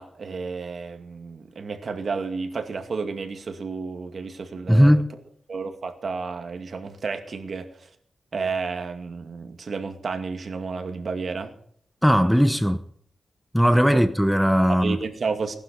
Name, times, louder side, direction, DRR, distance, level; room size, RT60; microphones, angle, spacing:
voice 1, 0.0-5.0 5.5-7.7 8.3-11.5 13.9-14.0 14.7-15.6, right 4 dB, 60° right, 2.3 m, -31 dB
voice 2, 4.7-5.1 12.0-12.8 13.5-15.0, equal, ahead, 0.9 m, -18 dB
19.0 x 11.5 x 5.4 m
wide cardioid pair, 110°, 0 cm